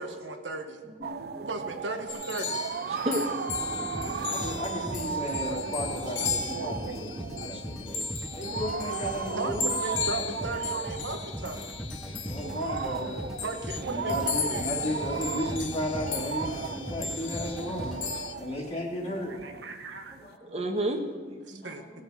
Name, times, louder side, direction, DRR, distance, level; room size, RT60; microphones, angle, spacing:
voice 1, 0.0-0.8 1.4-2.6 5.5-5.6 6.2-7.1 7.3-7.5 9.3-11.7 13.4-14.1 14.4-15.0 19.4-20.1 21.5-22.0, right 3 dB, 80° right, 5 dB, 1.2 m, -36 dB
voice 2, 1.0-1.5 1.9-2.0 2.9-4.6 5.1-5.6 6.6-6.7 7.3-7.6 8.0-8.1 9.4-9.7 12.0-12.3 13.4-13.5 13.9-14.0 15.2-15.4 18.4-18.5 20.5-21.7, right 1 dB, 35° right, 4 dB, 1.2 m, -35 dB
sound 1, 1.0-20.4, right 6 dB, 55° right, 0.3 m, -37 dB
sound 2, 2.1-18.3, left 6 dB, 85° left, 1.1 m, -36 dB
sound 3, 3.5-18.7, equal, ahead, 0.7 m, -39 dB
voice 3, 3.6-9.8 11.1-11.2 11.5-11.8 12.2-13.3 13.9-19.6 20.2-20.6 21.6-22.0, left 1 dB, 30° left, -6 dB, 1.6 m, -35 dB
17.5 x 7.5 x 4.6 m, 1.5 s
head